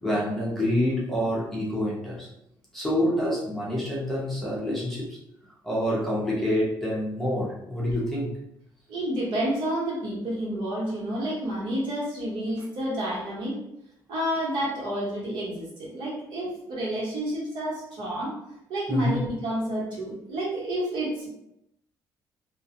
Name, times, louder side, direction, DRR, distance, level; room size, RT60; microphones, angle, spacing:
voice 1, 0.0-2.3 2.7-5.2 5.6-8.4 16.4-16.5 18.9-19.2, left 1 dB, 5° left, -6 dB, 0.6 m, -27 dB
voice 2, 8.9-13.6 14.1-18.3 18.7-21.3, right 1 dB, 75° right, -6 dB, 1.2 m, -29 dB
2.3 x 2.3 x 2.7 m, 0.80 s
cardioid pair, 170°, 8 cm